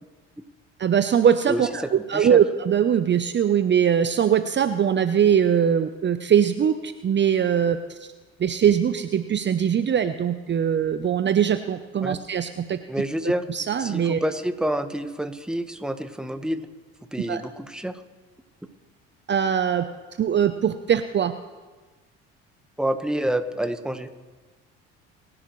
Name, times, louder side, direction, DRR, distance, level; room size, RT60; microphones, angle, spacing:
voice 1, 0.8-8.1 8.4-12.8 13.5-14.2 17.3-17.4 19.3-19.8 20.2-21.3, right 8 dB, 35° right, 10 dB, 0.8 m, -21 dB
voice 2, 12.9-13.4 13.8-16.6 17.1-17.9 22.8-24.1, right 1 dB, ahead, 8 dB, 1.4 m, -28 dB
25.5 x 11.0 x 3.2 m, 1.3 s
hypercardioid pair, 65°, 30 cm